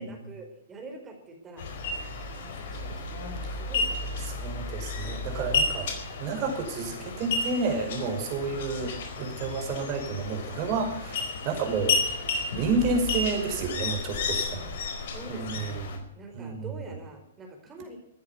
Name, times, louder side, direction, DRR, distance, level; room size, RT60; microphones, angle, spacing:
voice 1, 0.0-1.6 2.4-4.4 8.4-8.7 14.4-14.7 15.1-15.8 16.1-18.0, right 2 dB, 20° right, 4 dB, 4.3 m, -45 dB
sound 1, 1.6-16.0, left 3 dB, 60° left, 4.5 m, -32 dB
voice 2, 4.2-5.9 6.2-12.0 12.5-14.6 15.3-16.0 16.3-16.7, right 4 dB, 40° right, 4 dB, 5.3 m, -30 dB
14.5 x 9.8 x 9.5 m, 0.74 s
hypercardioid pair, 125°, 0 cm